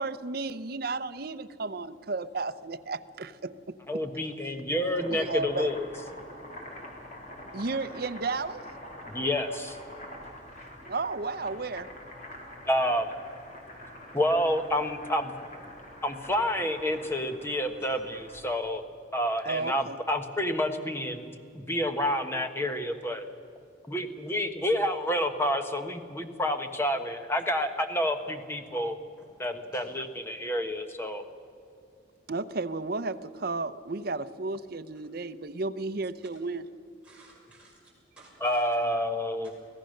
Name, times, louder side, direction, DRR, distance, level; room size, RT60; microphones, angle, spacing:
voice 1, 0.0-3.5 5.1-5.7 7.5-8.6 10.8-11.9 19.5-20.0 32.3-36.6, right 3 dB, 50° right, 11 dB, 0.7 m, -33 dB
voice 2, 3.9-5.9 9.1-9.8 12.7-13.1 14.1-15.3 16.0-18.8 19.1-21.3 21.5-23.3 23.9-28.9 29.4-31.2 38.4-39.5, equal, 10° left, 6 dB, 1.2 m, -29 dB
Boiling, 4.7-18.5, left 1 dB, 40° left, 3.6 m, -46 dB
voice 3, 17.5-17.9 27.4-27.5 29.2-29.3 29.5-29.9 37.0-38.8, right 2 dB, 5° right, -5 dB, 6.2 m, -55 dB
25.0 x 16.5 x 6.6 m, 2.4 s
head